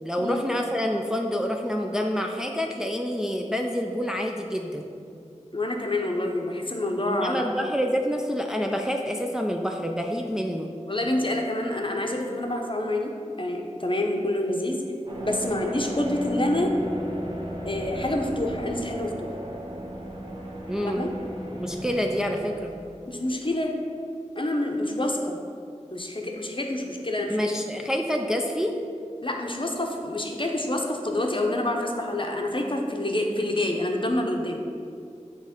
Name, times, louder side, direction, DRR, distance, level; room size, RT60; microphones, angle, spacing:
voice 1, 0.0-4.9 7.1-10.7 20.7-21.0 21.6-22.7 27.3-28.8, equal, 5° right, 2 dB, 0.4 m, -27 dB
voice 2, 5.5-7.4 10.9-14.8 15.2-16.7 17.7-19.3 20.8-21.1 23.1-23.7 24.4-25.4 25.9-27.4 29.2-34.6, left 1 dB, 40° left, 1 dB, 0.7 m, -27 dB
sound 1, 15.1-23.6, equal, 40° right, 1.2 m, -36 dB
7.9 x 3.1 x 5.1 m, 2.4 s
wide cardioid pair, 40°, 13 cm